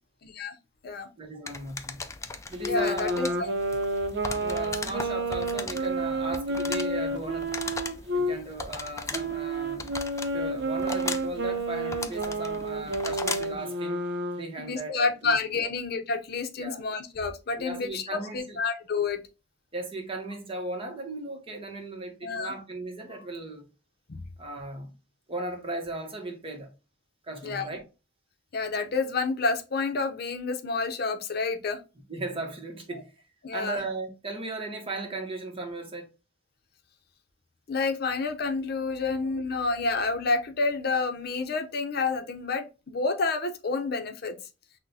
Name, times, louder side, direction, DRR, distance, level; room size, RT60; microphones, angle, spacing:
voice 1, 0.2-0.5 0.8-1.1 2.7-3.3 14.6-19.2 22.2-22.5 24.1-24.2 27.4-27.6 28.5-31.8 33.4-33.8 37.7-44.4, left 4 dB, 60° left, 0.6 m, -29 dB
voice 2, 1.2-2.0 2.5-3.3 4.4-7.5 8.1-9.9 10.3-14.0 14.3-15.7 16.6-16.9 17.6-18.6 19.7-23.7 24.4-24.9 25.3-26.7 27.2-27.8 32.1-33.1 33.5-36.1, right 2 dB, 30° right, 0.9 m, -36 dB
sound 1, 1.5-13.6, left 4 dB, 15° left, 0.4 m, -38 dB
Wind instrument woodwind instrument, 2.5-8.4 9.1-14.5, right 1 dB, 65° right, 0.6 m, -30 dB
5.9 x 2.1 x 2.7 m
head